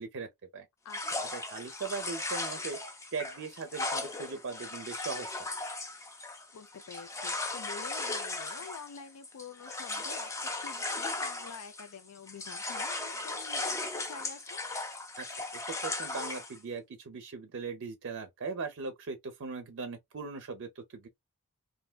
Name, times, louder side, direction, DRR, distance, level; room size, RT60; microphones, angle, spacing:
voice 1, 0.0-0.7 1.3-2.8 3.1-5.5 15.2-15.3 15.8-21.1, right 4 dB, 55° right, 0.5 m, -39 dB
voice 2, 0.8-1.4 6.5-14.6, left 6 dB, 85° left, 0.4 m, -47 dB
sound 1, 0.9-12.0 12.3-16.6, left 2 dB, 15° left, 0.4 m, -37 dB
3.3 x 2.6 x 2.2 m
head